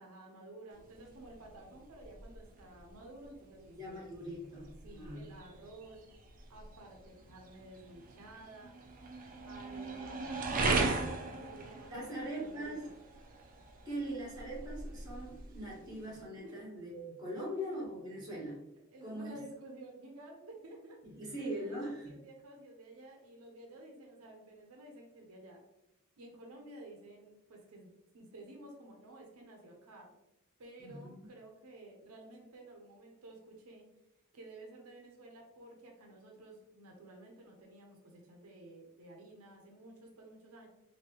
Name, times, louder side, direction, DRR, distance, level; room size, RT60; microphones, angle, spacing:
voice 1, 0.0-4.1 4.4-6.0 6.5-8.7 9.4-10.2 10.6-12.9 16.4-16.5 17.3-17.4 18.5-21.0 21.4-25.6 26.2-30.1 30.6-33.9 34.3-40.7, right 1 dB, 85° right, 1 dB, 0.7 m, -53 dB
sound 1, 0.7-16.2, right 3 dB, 40° right, 0.5 m, -40 dB
voice 2, 3.7-5.4 11.9-12.8 13.8-18.6 19.0-19.4 21.0-22.1 30.8-31.2, right 1 dB, 20° right, -5 dB, 1.4 m, -41 dB
3.3 x 2.6 x 2.9 m, 0.87 s
head